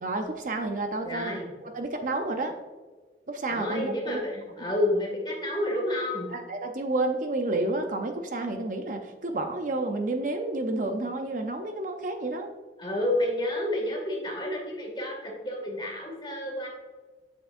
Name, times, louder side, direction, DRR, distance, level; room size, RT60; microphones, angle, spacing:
voice 1, 0.0-2.5 3.3-4.2 6.3-12.5, right 2 dB, 45° right, 5 dB, 0.6 m, -30 dB
voice 2, 1.0-1.5 3.5-6.3 12.8-16.7, left 1 dB, 25° left, -2 dB, 2.1 m, -30 dB
7.8 x 7.0 x 2.5 m, 1.3 s
head